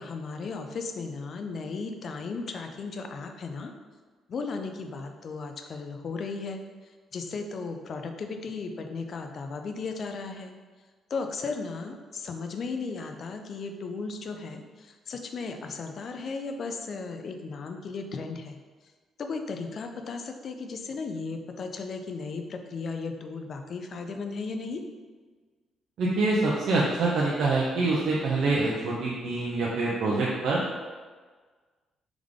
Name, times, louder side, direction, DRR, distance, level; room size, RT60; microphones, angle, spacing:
voice 1, 0.0-3.7 4.3-10.5 11.1-18.6 19.2-24.8, left 4 dB, 55° left, 5 dB, 0.5 m, -35 dB
voice 2, 26.0-30.6, right 3 dB, 70° right, -5 dB, 0.6 m, -25 dB
3.6 x 3.4 x 3.7 m, 1.4 s
cardioid pair, 90°, 0 cm